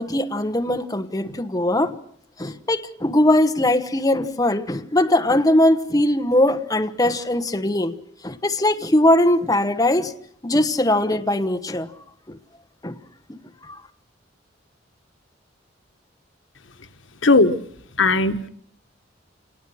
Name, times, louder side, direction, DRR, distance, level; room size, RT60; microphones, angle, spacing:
voice 1, 0.0-1.9 2.4-7.9 8.2-10.1 10.4-11.9 12.3-12.4 12.8-13.0 13.3-13.8, left 1 dB, 20° left, 1.1 m, -20 dB
voice 2, 17.2-17.5 18.0-18.5, left 3 dB, 85° left, 1.4 m, -17 dB
28.0 x 19.5 x 6.4 m
head